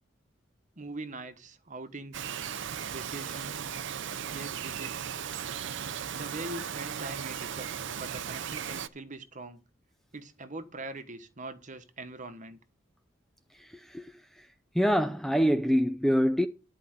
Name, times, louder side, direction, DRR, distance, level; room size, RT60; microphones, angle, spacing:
voice 1, 0.8-2.3 2.9-3.7 4.3-5.1 6.1-7.7 8.0-9.6 10.1-12.6, right 2 dB, 40° right, 1.2 m, -42 dB
Bird vocalization bird call bird song, 2.1-8.9, right 8 dB, 65° right, 0.6 m, -36 dB
voice 2, 14.8-16.5, equal, ahead, 0.4 m, -25 dB
11.0 x 4.9 x 7.8 m
head